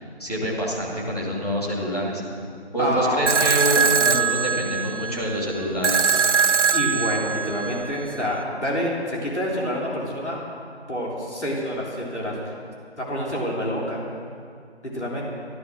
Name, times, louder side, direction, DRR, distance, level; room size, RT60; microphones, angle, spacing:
voice 1, 0.2-2.2 2.7-6.2, equal, 35° left, -5 dB, 2.6 m, -26 dB
voice 2, 2.8-3.2 6.7-10.4 10.9-12.3 13.0-14.0 14.8-15.2, equal, 80° left, -3 dB, 3.5 m, -27 dB
sound 1, 3.3-8.3, right 6 dB, 90° right, 0.5 m, -22 dB
13.0 x 13.0 x 6.3 m, 2.2 s
figure-of-eight pair, 180°, 34 cm